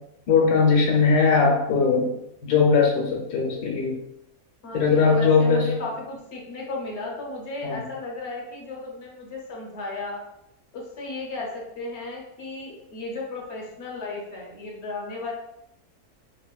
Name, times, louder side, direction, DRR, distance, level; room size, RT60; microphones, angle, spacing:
voice 1, 0.3-2.1 2.4-4.0 4.7-5.7 7.6-7.8, left 5 dB, 85° left, 0 dB, 1.2 m, -20 dB
voice 2, 4.6-10.2 10.7-15.3, left 2 dB, 55° left, -2 dB, 0.8 m, -34 dB
2.9 x 2.7 x 2.2 m, 0.83 s
omnidirectional pair, 1.6 m